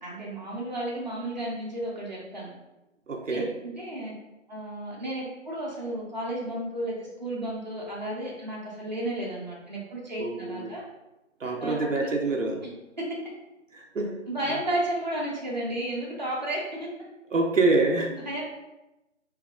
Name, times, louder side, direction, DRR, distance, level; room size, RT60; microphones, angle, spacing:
voice 1, 0.0-2.5 3.3-4.1 4.5-10.9 11.6-11.9 14.3-16.9 18.1-18.4, right 1 dB, 35° right, -5 dB, 0.7 m, -33 dB
voice 2, 3.1-3.5 10.2-10.7 11.4-12.6 13.9-14.1 17.3-18.1, right 3 dB, 75° right, 2 dB, 0.7 m, -25 dB
3.3 x 2.3 x 3.7 m, 0.99 s
figure-of-eight pair, 165°, 39 cm